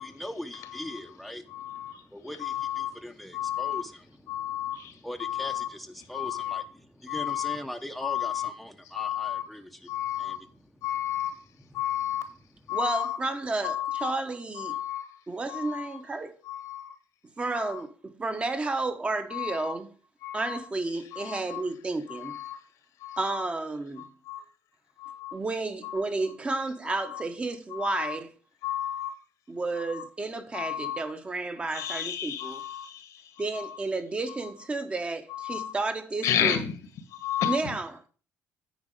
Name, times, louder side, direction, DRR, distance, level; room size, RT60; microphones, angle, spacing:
voice 1, 0.0-10.6 11.7-11.8, left 1 dB, ahead, 0.9 m, -41 dB
voice 2, 1.5-2.0 2.4-3.0 3.3-3.8 4.3-4.9 5.2-5.7 6.1-6.7 7.1-7.6 8.0-8.5 8.9-9.5 9.9-10.4 10.8-11.3 11.7-12.3 12.7-13.2 13.6-14.1 14.6-15.1 15.5-15.9 16.4-16.9 17.4-17.8 19.3-19.8 20.2-20.6 21.1-21.6 22.1-22.6 23.0-23.5 24.0-24.4 25.0-25.4 25.8-26.0 26.9-27.2 27.7-28.2 28.6-29.2 29.8-30.0 30.5-31.1 31.7-33.2 33.5-33.8 35.3-35.7 36.2-36.7 37.1-37.6, left 11 dB, 75° left, 1.6 m, -32 dB
voice 3, 12.7-14.7 15.3-16.4 17.4-19.9 20.3-22.4 23.2-24.1 25.3-28.3 29.5-32.6 33.4-36.6 37.4-38.0, right 3 dB, 20° right, 1.1 m, -32 dB
9.5 x 4.4 x 6.6 m
cardioid pair, 125°, 6 cm